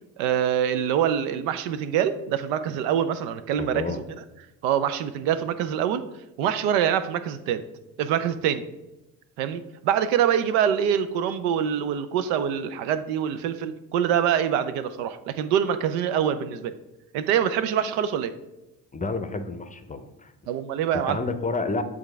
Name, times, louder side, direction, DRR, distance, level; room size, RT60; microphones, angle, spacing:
voice 1, 0.2-4.0 4.6-6.1 6.4-7.6 8.0-8.6 9.4-16.7 17.1-18.3 20.5-21.2, right 9 dB, 75° right, 12 dB, 0.6 m, -25 dB
voice 2, 3.6-4.0 18.9-20.3 21.1-21.8, left 3 dB, 15° left, 9 dB, 0.6 m, -30 dB
8.1 x 3.6 x 3.3 m, 0.96 s
hypercardioid pair, 50°, 45 cm